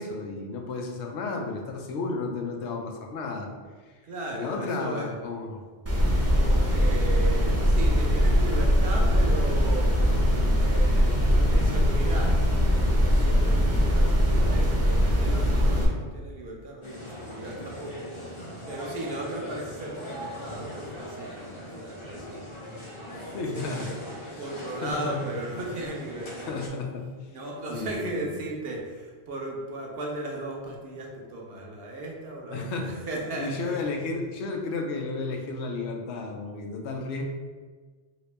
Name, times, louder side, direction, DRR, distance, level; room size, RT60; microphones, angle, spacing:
voice 1, 0.0-3.5 4.3-5.6 23.2-23.9 24.2-24.4 24.8-25.2 26.5-27.1 27.7-28.4 32.5-33.0 33.4-37.2, left 3 dB, 90° left, 2 dB, 0.9 m, -33 dB
voice 2, 4.0-5.1 6.3-9.9 10.5-18.1 18.7-24.0 24.3-26.6 27.3-33.8, right 2 dB, 65° right, 0 dB, 0.8 m, -37 dB
sound 1, 5.9-15.9, equal, 20° right, 0.4 m, -21 dB
sound 2, 16.8-26.7, left 1 dB, 35° left, 0.5 m, -40 dB
2.9 x 2.8 x 3.2 m, 1.4 s
omnidirectional pair, 1.1 m